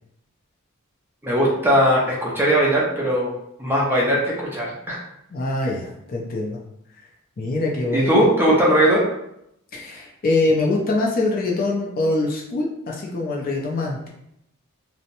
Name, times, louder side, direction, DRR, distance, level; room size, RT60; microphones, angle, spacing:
voice 1, 1.2-3.3 3.6-5.0 7.9-9.0, equal, 10° right, -4 dB, 0.5 m, -19 dB
voice 2, 5.3-6.6 7.4-8.2 9.7-14.1, left 2 dB, 40° left, -1 dB, 0.4 m, -24 dB
2.8 x 2.0 x 2.5 m, 0.78 s
head